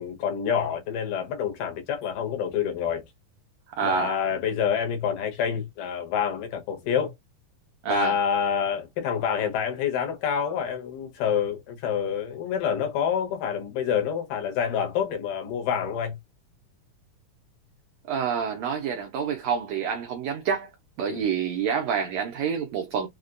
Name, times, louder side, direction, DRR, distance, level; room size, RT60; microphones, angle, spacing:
voice 1, 0.0-3.0 3.8-7.1 7.8-16.2 21.1-21.3, left 8 dB, 75° left, 2.7 m, -27 dB
voice 2, 3.8-4.2 7.8-8.1 18.1-20.7 21.0-23.1, right 7 dB, 85° right, 1.5 m, -27 dB
5.8 x 2.1 x 2.5 m
omnidirectional pair, 3.9 m